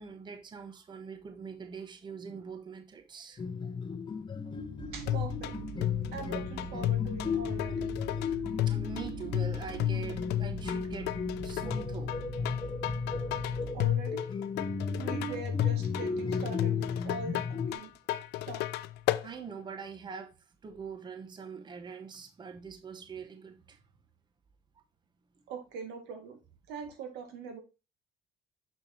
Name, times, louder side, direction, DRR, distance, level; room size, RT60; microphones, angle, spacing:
voice 1, 0.0-3.5 8.1-11.2 11.4-12.2 19.2-23.8, right 6 dB, 25° right, 0.8 m, -43 dB
sound 1, 3.4-17.7, left 5 dB, 25° left, 0.8 m, -36 dB
sound 2, 4.8-13.9, right 5 dB, 50° right, 1.3 m, -44 dB
voice 2, 4.9-5.5 6.1-7.7 13.7-14.2 15.0-17.9 18.5-18.6 25.5-26.4 26.7-27.6, right 4 dB, 90° right, 1.9 m, -42 dB
sound 3, 5.1-19.3, left 13 dB, 80° left, 0.5 m, -33 dB
6.4 x 6.0 x 2.7 m
cardioid pair, 110°, 17 cm